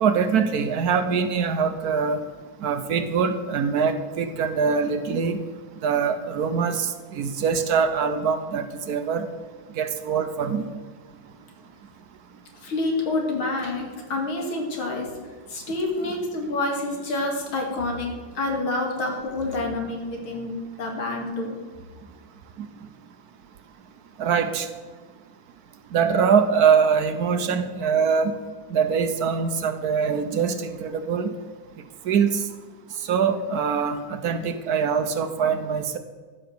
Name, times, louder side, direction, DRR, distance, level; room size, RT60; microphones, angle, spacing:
voice 1, 0.0-2.2 2.6-5.4 5.8-9.3 9.8-10.6 24.2-24.7 25.9-28.3 28.7-31.3 32.1-32.3 33.1-36.0, right 6 dB, 65° right, 9 dB, 1.0 m, -23 dB
voice 2, 12.6-15.1 15.5-21.6, left 2 dB, 75° left, 1 dB, 2.9 m, -28 dB
14.0 x 5.7 x 6.8 m, 1.4 s
omnidirectional pair, 2.3 m